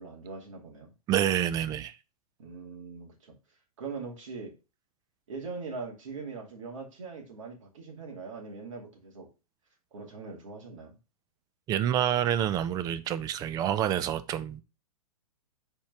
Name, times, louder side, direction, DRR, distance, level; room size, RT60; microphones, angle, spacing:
voice 1, 0.0-0.9 2.4-3.3 3.8-4.5 5.3-9.3 9.9-11.0, right 4 dB, 55° right, 2.7 m, -41 dB
voice 2, 1.1-1.9 11.7-14.6, right 10 dB, 20° right, 0.6 m, -27 dB
7.1 x 4.6 x 6.2 m
figure-of-eight pair, 110°, 19 cm